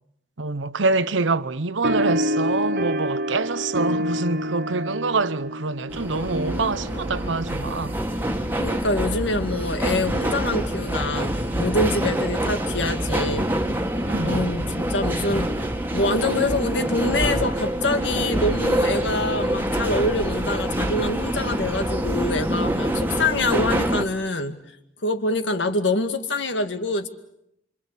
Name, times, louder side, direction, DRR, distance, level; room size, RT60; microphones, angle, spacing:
voice 1, 0.4-8.0 13.9-14.5, right 3 dB, 85° right, 1.0 m, -26 dB
sound 1, 1.8-8.7, equal, 55° right, 1.1 m, -28 dB
sound 2, 5.9-24.0, right 1 dB, 10° right, 1.8 m, -26 dB
voice 2, 8.6-13.5 14.2-24.6 25.0-27.1, left 2 dB, 70° left, 2.2 m, -25 dB
26.0 x 26.0 x 8.4 m
head